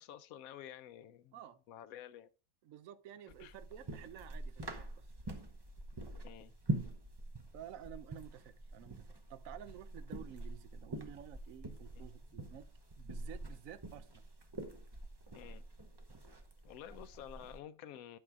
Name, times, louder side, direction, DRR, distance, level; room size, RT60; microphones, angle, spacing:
voice 1, 0.0-1.4 1.7-2.3 3.4-3.5 6.2-6.5 12.0-12.1 15.3-15.6 16.6-18.2, left 10 dB, 75° left, 1.1 m, -50 dB
voice 2, 2.6-5.1 7.5-12.7 13.0-14.2, right 10 dB, 70° right, 1.1 m, -52 dB
sound 1, 3.3-17.6, right 2 dB, 20° right, 0.7 m, -45 dB
11.0 x 4.8 x 3.6 m
omnidirectional pair, 1.6 m